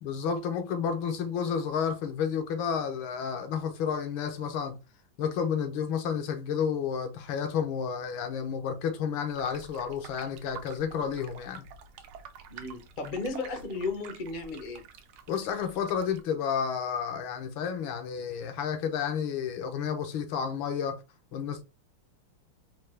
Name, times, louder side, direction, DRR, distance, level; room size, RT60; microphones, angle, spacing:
voice 1, 0.0-4.8 5.2-11.7 15.3-21.0 21.3-21.6, left 7 dB, 75° left, 1.4 m, -31 dB
sound 1, 9.3-16.2, right 7 dB, 80° right, 1.5 m, -48 dB
voice 2, 12.5-14.8, left 3 dB, 60° left, 0.5 m, -34 dB
4.4 x 2.2 x 3.1 m
omnidirectional pair, 2.3 m